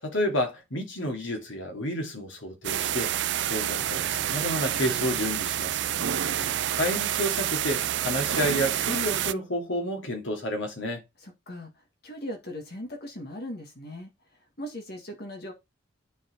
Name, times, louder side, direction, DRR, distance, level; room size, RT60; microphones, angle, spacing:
voice 1, 0.0-3.1 3.4-5.8 6.7-11.0, equal, 70° left, 2.7 m, -30 dB
sound 1, 2.6-9.3, right 11 dB, 60° right, 0.4 m, -28 dB
voice 2, 5.9-6.5 11.2-14.1 14.6-15.5, left 1 dB, 50° left, 1.9 m, -39 dB
9.7 x 4.7 x 4.6 m
head